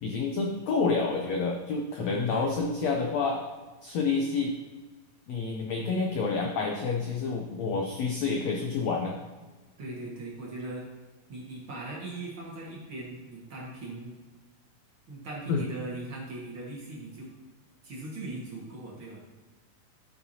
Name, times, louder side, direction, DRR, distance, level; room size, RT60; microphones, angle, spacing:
voice 1, 0.0-3.4 3.8-4.5 5.3-9.1 15.5-15.6, left 4 dB, 85° left, 1 dB, 1.5 m, -28 dB
voice 2, 2.0-2.5 9.8-10.9 11.3-14.2 15.1-17.3 17.8-19.2, right 2 dB, 45° right, -4 dB, 1.9 m, -39 dB
12.5 x 5.7 x 2.8 m, 1.2 s
omnidirectional pair, 4.0 m